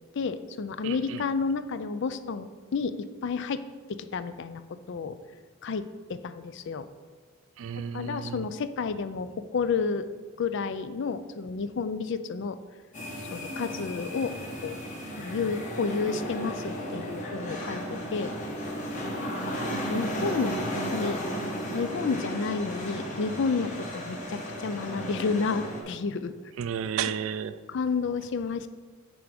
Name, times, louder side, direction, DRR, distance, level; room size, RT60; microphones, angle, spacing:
voice 1, 0.1-2.9 3.2-3.6 3.9-4.6 4.9-5.2 5.6-6.9 7.9-10.1 10.4-12.6 13.3-14.3 14.6-14.8 15.2-17.8 18.1-18.3 19.5-19.6 19.9-20.6 20.9-21.2 21.7-26.3 27.7-28.7, left 5 dB, 60° left, 0.4 m, -30 dB
voice 2, 0.8-1.2 7.6-8.5 26.6-27.6, right 7 dB, 65° right, 0.3 m, -32 dB
sound 1, 12.9-25.8, equal, 35° left, 1.3 m, -34 dB
8.8 x 3.5 x 5.1 m
head